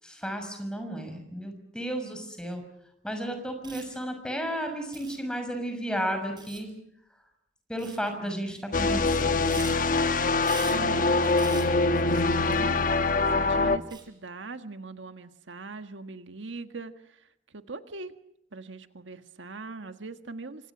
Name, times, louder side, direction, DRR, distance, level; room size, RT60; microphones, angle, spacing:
voice 1, 0.0-2.6 3.0-6.7 7.7-9.5, equal, 5° left, 6 dB, 6.2 m, -33 dB
sound 1, 2.4-2.5 3.5-3.9 4.9-5.2 6.4-6.7 7.8-8.1 9.3-10.1 10.4-10.8 11.3-11.7 12.3-12.6 12.8-12.9 13.9-14.0, right 5 dB, 25° right, 5.2 m, -42 dB
sound 2, 8.7-13.8, left 3 dB, 45° left, 1.2 m, -24 dB
voice 2, 10.2-12.8 13.3-17.2 17.5-18.1 18.5-20.7, right 3 dB, 80° right, 9 dB, 1.6 m, -41 dB
28.5 x 25.5 x 6.1 m, 0.76 s
head